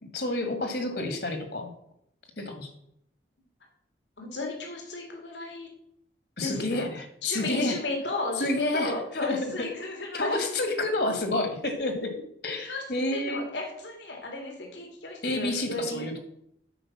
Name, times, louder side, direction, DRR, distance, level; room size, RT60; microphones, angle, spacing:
voice 1, 0.0-1.7 2.4-2.7 6.4-7.8 8.4-9.7 10.1-13.4 15.2-16.2, left 2 dB, 60° left, 6 dB, 1.8 m, -29 dB
voice 2, 4.2-5.7 6.4-6.9 7.2-10.4 12.6-12.8 13.1-16.0, left 2 dB, 80° left, 1 dB, 2.4 m, -34 dB
9.1 x 5.1 x 7.3 m, 0.73 s
head